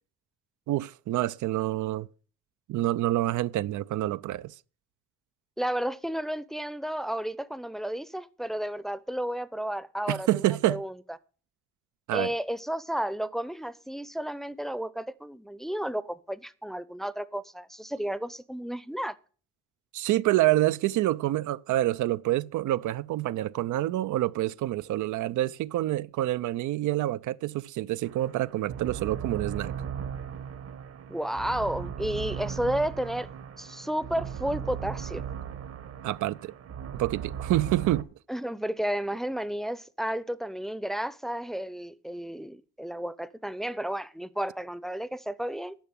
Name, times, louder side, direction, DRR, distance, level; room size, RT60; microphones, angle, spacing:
voice 1, 0.7-2.1 2.7-4.5 10.1-10.8 12.1-12.3 19.9-29.7 36.0-36.5 37.0-38.1, right 15 dB, 75° right, 0.5 m, -27 dB
voice 2, 5.6-10.4 10.7-10.9 12.1-19.1 31.1-33.3 33.6-35.2 38.3-45.8, equal, ahead, 0.6 m, -32 dB
sound 1, 28.0-38.0, right 8 dB, 50° right, 1.1 m, -37 dB
10.5 x 5.9 x 8.7 m
cardioid pair, 90°, 30 cm